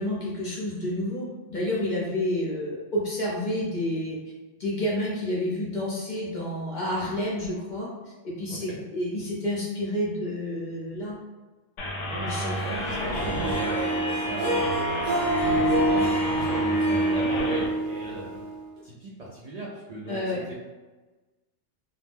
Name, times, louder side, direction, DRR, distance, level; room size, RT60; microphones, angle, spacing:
voice 1, 0.0-4.2 4.6-7.9 8.2-11.2 12.2-12.6 20.1-20.4, left 1 dB, 45° left, -6 dB, 0.7 m, -29 dB
voice 2, 8.5-8.8 12.1-18.4 18.8-20.5, right 2 dB, 80° right, -5 dB, 0.3 m, -36 dB
sound 1, 11.8-17.7, left 1 dB, 75° left, 0.9 m, -32 dB
Harp, 12.5-18.8, right 1 dB, 50° right, 0.8 m, -26 dB
2.3 x 2.1 x 3.2 m, 1.2 s
omnidirectional pair, 1.3 m